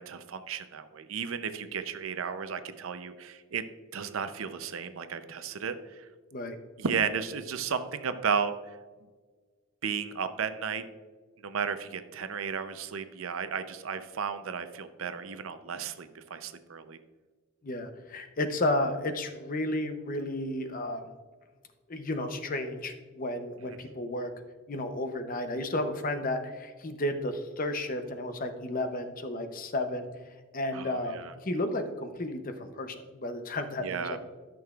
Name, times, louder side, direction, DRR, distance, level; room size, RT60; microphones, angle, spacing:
voice 1, 0.0-3.6 3.9-6.1 6.8-8.8 9.8-10.8 11.4-17.0 30.7-31.3 33.8-34.2, right 6 dB, 75° right, 10 dB, 0.6 m, -34 dB
voice 2, 17.6-21.1 21.9-24.3 24.7-30.1 30.5-34.2, left 1 dB, 40° left, 8 dB, 0.7 m, -32 dB
12.5 x 6.3 x 2.4 m, 1.4 s
head